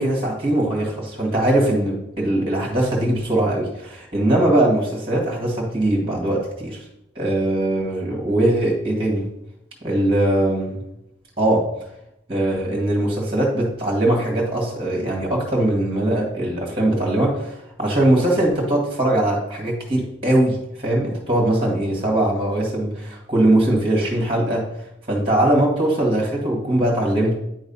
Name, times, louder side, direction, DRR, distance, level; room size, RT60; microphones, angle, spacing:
voice 1, 0.0-6.8 7.2-9.3 9.8-10.8 11.4-11.7 12.3-20.6 20.8-24.7 25.1-27.3, right 1 dB, 30° right, -2 dB, 1.9 m, -21 dB
9.4 x 4.0 x 5.5 m, 0.83 s
head